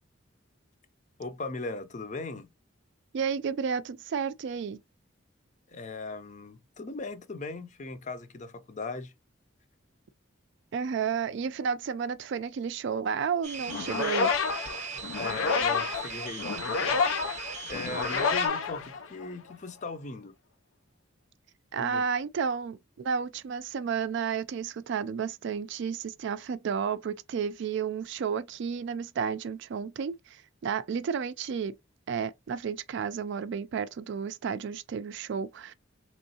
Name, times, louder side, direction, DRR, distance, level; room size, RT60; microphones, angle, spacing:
voice 1, 1.2-2.5 5.7-9.1 15.1-20.3 21.8-22.0, left 3 dB, 40° left, 0.5 m, -39 dB
voice 2, 3.1-4.8 10.7-14.3 21.7-31.7 32.1-35.7, right 6 dB, 60° right, 0.3 m, -32 dB
sound 1, 13.4-18.5, right 6 dB, 35° right, 0.7 m, -39 dB
sound 2, 13.7-19.5, left 5 dB, 90° left, 0.5 m, -29 dB
3.5 x 3.1 x 2.8 m
head